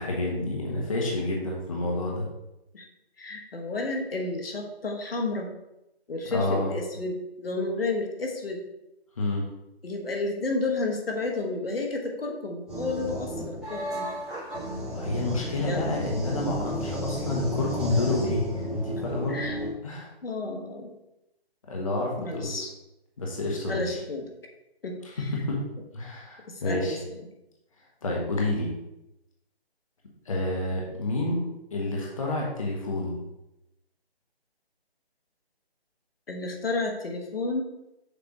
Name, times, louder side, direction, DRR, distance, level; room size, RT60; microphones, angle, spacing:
voice 1, 0.0-2.3 6.3-6.7 9.2-9.4 14.9-19.4 19.8-20.1 21.7-22.5 23.2-24.0 25.0-25.6 25.9-27.0 28.0-28.7 30.2-31.4 31.7-33.2, left 2 dB, 30° left, -2 dB, 1.1 m, -29 dB
voice 2, 3.2-5.5 6.1-8.6 9.8-14.1 15.6-16.5 18.9-19.0 19.3-19.6 20.2-20.9 22.2-22.7 23.7-24.3 24.8-24.9 25.2-25.3 26.5-27.2 36.3-37.6, left 3 dB, 65° left, 2 dB, 1.3 m, -31 dB
sound 1, 12.7-19.7, equal, ahead, 1.3 m, -33 dB
6.7 x 3.3 x 5.3 m, 0.92 s
hypercardioid pair, 170°, 32 cm